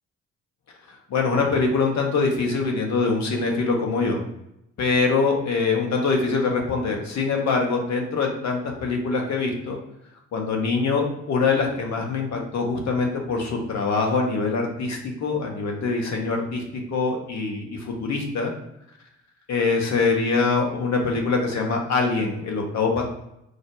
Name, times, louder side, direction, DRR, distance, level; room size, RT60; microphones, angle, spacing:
voice 1, 1.1-4.2 4.8-9.8 10.3-16.6 16.9-18.5 19.5-23.0, left 4 dB, 55° left, 1 dB, 1.2 m, -24 dB
4.6 x 2.1 x 4.7 m, 0.82 s
hypercardioid pair, 45°, 34 cm